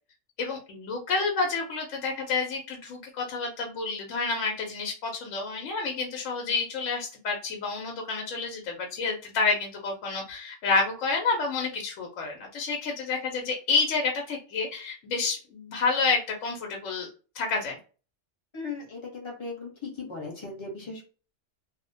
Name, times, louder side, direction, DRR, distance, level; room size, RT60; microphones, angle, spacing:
voice 1, 0.4-17.1 17.3-17.8, left 4 dB, 80° left, 0 dB, 0.9 m, -29 dB
voice 2, 18.5-21.1, left 4 dB, 25° left, -1 dB, 0.8 m, -37 dB
2.7 x 2.1 x 2.6 m, 0.36 s
omnidirectional pair, 1.3 m